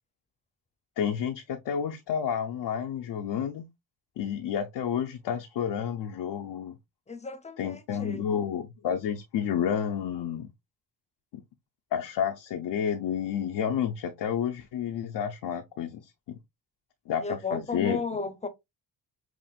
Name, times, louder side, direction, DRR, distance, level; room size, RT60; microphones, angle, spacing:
voice 1, 1.0-3.7 4.2-6.8 7.6-10.5 11.9-16.4 17.1-18.0, left 8 dB, 70° left, 0.7 m, -30 dB
voice 2, 7.1-8.3 17.2-18.5, left 4 dB, 15° left, 0.7 m, -34 dB
5.9 x 2.5 x 2.4 m
cardioid pair, 95°, 43 cm